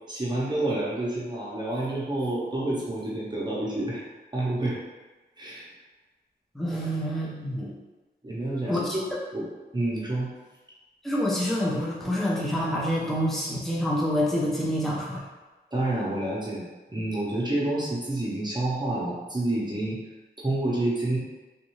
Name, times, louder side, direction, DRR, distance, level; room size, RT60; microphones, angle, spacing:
voice 1, 0.1-4.0 4.3-4.8 5.4-5.7 8.2-9.0 9.3-9.4 9.7-10.3 15.7-16.6 16.9-20.0 20.4-21.2, right 1 dB, 25° right, -7 dB, 0.8 m, -28 dB
voice 2, 6.5-7.7 8.7-9.0 11.0-15.2, equal, ahead, -5 dB, 0.6 m, -27 dB
3.5 x 2.6 x 3.0 m, 1.2 s
wide cardioid pair, 105°, 18 cm